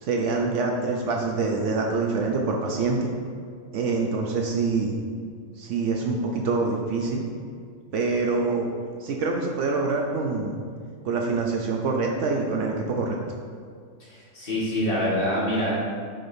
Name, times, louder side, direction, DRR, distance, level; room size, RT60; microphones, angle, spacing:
voice 1, 0.0-3.1 3.7-5.0 5.6-7.2 7.9-8.7 9.0-10.6 11.0-13.2, right 3 dB, 65° right, 0 dB, 0.9 m, -25 dB
voice 2, 14.1-15.8, equal, 40° left, -7 dB, 1.7 m, -25 dB
7.4 x 5.3 x 2.6 m, 2.1 s
omnidirectional pair, 1.4 m